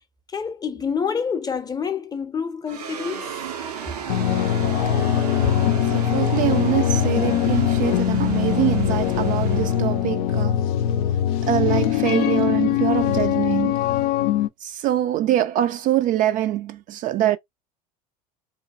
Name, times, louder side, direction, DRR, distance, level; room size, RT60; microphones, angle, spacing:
voice 1, 0.3-3.4, left 6 dB, 20° left, 0.6 m, -27 dB
sound 1, 2.7-11.2, right 6 dB, 90° right, 0.7 m, -34 dB
sound 2, 4.1-14.5, left 10 dB, 65° left, 0.5 m, -22 dB
voice 2, 5.9-10.6 11.5-13.9 14.6-17.4, right 13 dB, 45° right, 0.4 m, -24 dB
3.0 x 2.2 x 2.5 m
hypercardioid pair, 80°, 20 cm